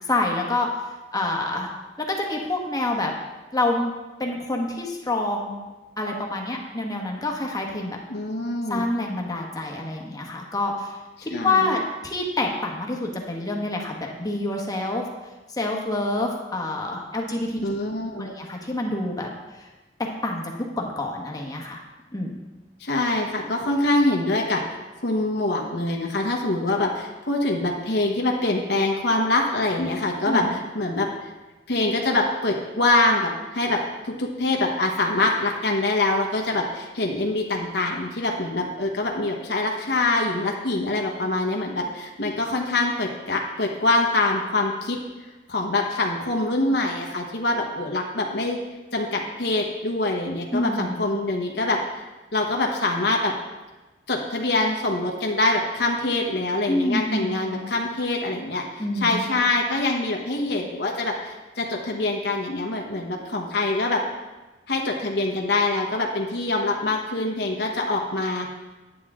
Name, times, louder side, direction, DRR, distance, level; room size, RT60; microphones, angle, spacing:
voice 1, 0.1-0.7 1.1-1.7 2.0-3.1 3.5-3.9 4.2-5.6 6.0-8.0 8.7-15.1 15.6-17.6 18.1-19.3 19.6-19.7 20.2-21.8 22.1-22.3 30.2-30.5 50.5-51.1 56.7-57.6 58.8-59.3, left 2 dB, 20° left, 0 dB, 1.4 m, -27 dB
voice 2, 8.1-8.9 11.3-11.8 17.6-18.3 22.8-31.3 31.7-45.0 45.5-48.6 48.9-52.1 52.3-53.3 54.1-64.0 64.7-68.5, left 2 dB, 65° left, 0 dB, 1.1 m, -24 dB
9.4 x 9.3 x 3.7 m, 1.2 s
head